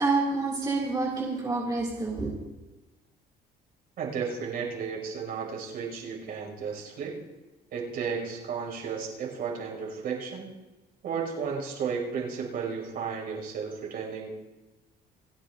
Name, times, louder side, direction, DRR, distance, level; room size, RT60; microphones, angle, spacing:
voice 1, 0.0-2.4, right 3 dB, 25° right, -4 dB, 2.3 m, -28 dB
voice 2, 4.0-7.2 7.7-10.5 11.0-14.3, right 6 dB, 65° right, -1 dB, 5.5 m, -33 dB
28.5 x 10.5 x 2.5 m, 1.1 s
cardioid pair, 110°, 17 cm